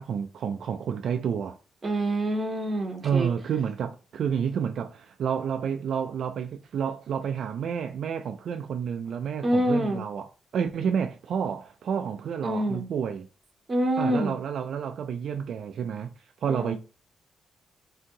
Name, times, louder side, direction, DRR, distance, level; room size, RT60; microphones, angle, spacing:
voice 1, 0.0-1.6 3.0-13.3 14.0-16.1 16.4-16.8, right 7 dB, 65° right, 0.3 m, -30 dB
voice 2, 1.8-3.3 9.4-10.0 12.4-12.8 13.7-14.3 16.5-16.8, right 1 dB, 30° right, 0.9 m, -26 dB
2.7 x 2.6 x 3.6 m
cardioid pair, 120°, 0 cm